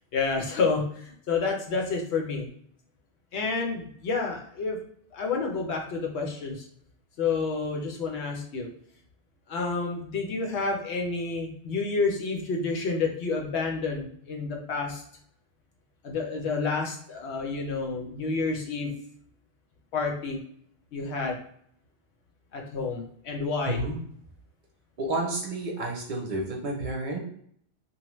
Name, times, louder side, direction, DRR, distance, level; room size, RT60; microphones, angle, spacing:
voice 1, 0.1-2.5 3.3-4.8 5.1-6.6 7.2-8.7 9.5-15.0 16.0-18.9 19.9-20.4 20.9-21.4 22.5-23.8, left 4 dB, 75° left, 1 dB, 0.9 m, -29 dB
voice 2, 23.6-24.0 25.0-27.2, right 2 dB, 50° right, -1 dB, 0.7 m, -30 dB
2.7 x 2.1 x 3.0 m, 0.65 s
omnidirectional pair, 1.1 m